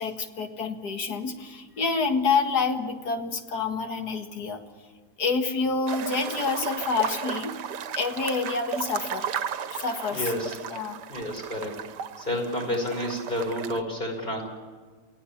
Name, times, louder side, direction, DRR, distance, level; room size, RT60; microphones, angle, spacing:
voice 1, 0.0-4.6 5.2-7.6 8.0-9.3 9.7-10.3 10.7-11.0, left 4 dB, 70° left, 5 dB, 2.2 m, -28 dB
sound 1, 5.9-13.8, right 8 dB, 80° right, 1.5 m, -35 dB
voice 2, 10.1-10.6 11.1-11.8 12.2-14.4, left 1 dB, 25° left, 1 dB, 5.6 m, -30 dB
29.0 x 17.0 x 7.2 m, 1.5 s
omnidirectional pair, 1.8 m